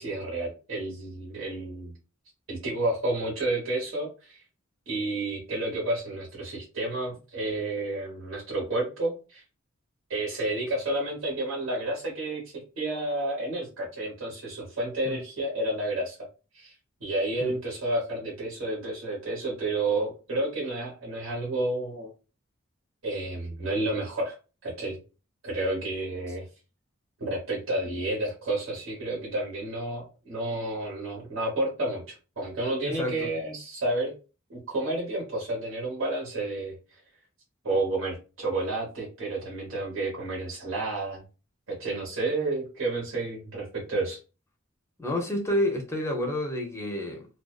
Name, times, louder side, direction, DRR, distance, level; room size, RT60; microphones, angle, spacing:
voice 1, 0.0-1.9 2.5-4.4 4.9-9.4 10.1-16.2 16.5-16.7 17.0-22.1 23.0-24.4 24.6-25.0 25.4-26.5 27.2-34.1 34.5-36.7 37.6-41.2 41.7-44.2, right 2 dB, 80° right, 1.1 m, -30 dB
voice 2, 32.8-33.3 45.0-47.3, left 1 dB, 15° left, 0.5 m, -29 dB
2.4 x 2.2 x 2.3 m
head